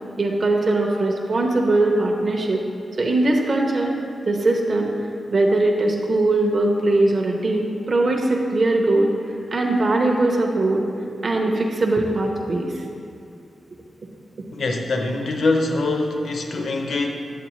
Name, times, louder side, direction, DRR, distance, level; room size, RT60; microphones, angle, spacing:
voice 1, 0.2-2.6 3.0-3.9 4.3-4.9 5.3-9.1 9.5-10.8 11.2-12.8, right 2 dB, 45° right, 0 dB, 0.7 m, -20 dB
voice 2, 14.5-17.1, left 2 dB, 65° left, 3 dB, 0.6 m, -23 dB
8.3 x 7.7 x 3.0 m, 2.4 s
wide cardioid pair, 145°, 0 cm